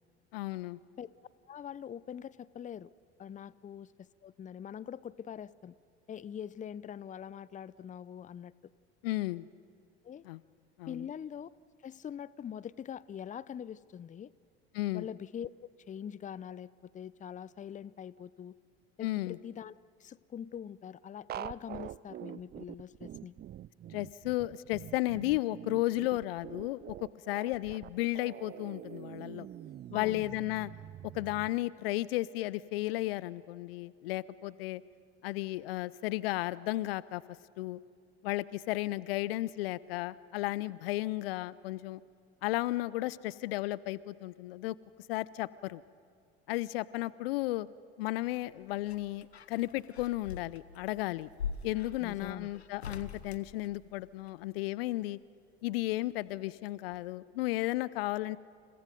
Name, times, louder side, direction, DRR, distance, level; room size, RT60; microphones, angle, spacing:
voice 1, 0.3-0.8 9.0-9.5 10.2-10.4 10.8-11.1 14.7-15.1 19.0-19.4 23.9-29.5 29.9-30.7 31.1-34.8 35.2-37.2 37.6-37.8 38.2-42.0 42.4-44.8 45.1-45.8 46.5-47.7 48.0-51.3 51.6-55.2 55.6-58.4, left 18 dB, 65° left, 20 dB, 0.6 m, -34 dB
voice 2, 1.5-2.9 3.2-3.9 4.2-5.7 6.1-8.5 10.0-10.2 10.9-11.5 11.8-14.3 14.9-18.5 19.0-19.7 20.0-23.3 29.9-30.3 52.0-52.6, left 8 dB, 25° left, 20 dB, 0.6 m, -43 dB
sound 1, 21.3-31.5, right 12 dB, 30° right, 0.5 m, -45 dB
sound 2, 48.3-54.4 55.8-56.6 56.9-57.0, left 6 dB, 85° left, 1.1 m, -44 dB
30.0 x 29.5 x 5.2 m, 2.2 s
figure-of-eight pair, 65°, 31 cm